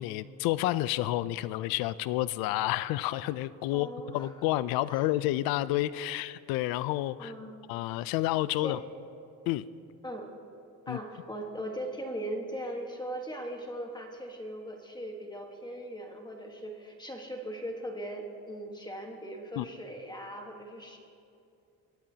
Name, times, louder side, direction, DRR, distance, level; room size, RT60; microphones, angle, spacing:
voice 1, 0.0-7.3 7.7-8.8 9.5-9.6 10.9-11.0 19.6-19.7, left 15 dB, 90° left, 17 dB, 0.5 m, -30 dB
voice 2, 3.7-4.4 4.9-5.1 7.2-7.7 8.6-8.8 10.0-10.4 10.9-21.0, right 1 dB, 10° left, 2 dB, 1.4 m, -39 dB
24.0 x 19.0 x 2.9 m, 2.6 s
cardioid pair, 145°, 34 cm